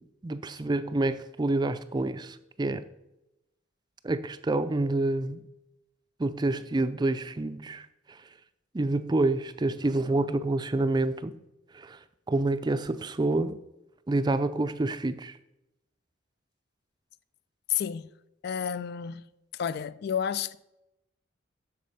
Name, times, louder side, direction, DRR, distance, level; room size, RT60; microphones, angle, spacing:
voice 1, 0.0-2.8 4.0-5.4 6.2-7.9 8.7-11.3 11.7-12.0 12.3-13.6 14.1-15.3, right 2 dB, 25° right, 0.4 m, -28 dB
voice 2, 17.7-18.1 18.4-19.2 19.5-20.6, left 8 dB, 60° left, 0.4 m, -30 dB
7.7 x 6.6 x 5.4 m
head